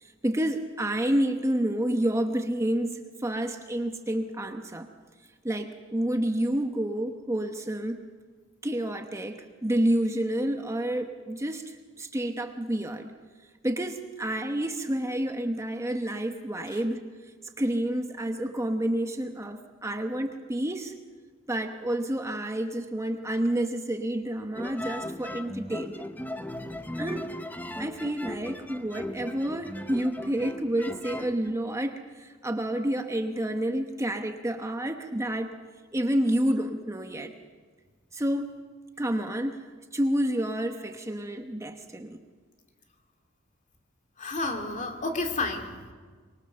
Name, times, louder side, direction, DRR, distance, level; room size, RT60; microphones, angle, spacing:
voice 1, 0.0-4.9 5.4-8.0 8.6-13.1 13.6-17.1 17.6-20.9 21.5-26.0 27.0-27.3 27.8-35.6 35.9-37.3 38.1-38.6 39.0-39.7 39.9-42.2, right 1 dB, 15° right, 5 dB, 1.0 m, -29 dB
sound 1, 24.5-31.6, left 1 dB, 10° left, 0.8 m, -38 dB
voice 2, 26.5-26.8 44.2-45.7, left 3 dB, 40° left, 4 dB, 2.4 m, -31 dB
24.5 x 22.5 x 6.7 m, 1.5 s
head